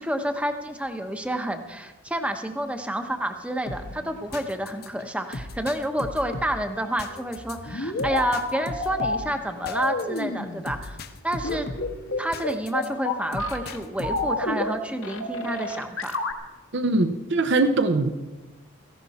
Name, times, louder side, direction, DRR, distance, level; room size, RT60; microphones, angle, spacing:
voice 1, 0.0-11.0 11.2-11.7 12.2-16.1, right 1 dB, 5° right, 6 dB, 0.9 m, -29 dB
sound 1, 3.7-12.9 13.3-14.4, left 2 dB, 45° left, 0.9 m, -38 dB
sound 2, 7.4-9.2 9.6-10.6 11.4-13.8 14.0-14.8 15.0-16.3, left 2 dB, 75° left, 1.5 m, -29 dB
voice 2, 16.7-18.1, right 2 dB, 55° right, 9 dB, 0.7 m, -22 dB
17.0 x 14.5 x 4.2 m, 1.2 s
head